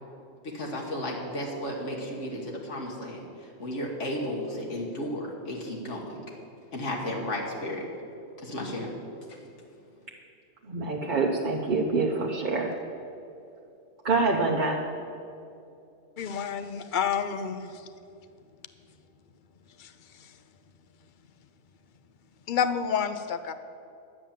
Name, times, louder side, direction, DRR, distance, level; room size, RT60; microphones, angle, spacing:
voice 1, 0.4-6.2 6.7-7.9 8.4-8.9 9.3-9.4, left 1 dB, 85° left, -1 dB, 1.8 m, -34 dB
voice 2, 10.7-12.7 14.0-14.8, right 3 dB, 45° right, -1 dB, 0.9 m, -26 dB
voice 3, 16.2-17.8 19.8-19.9 20.2-20.3 22.5-23.5, left 7 dB, 50° left, 11 dB, 0.7 m, -29 dB
11.0 x 8.6 x 7.4 m, 2.6 s
omnidirectional pair, 1.2 m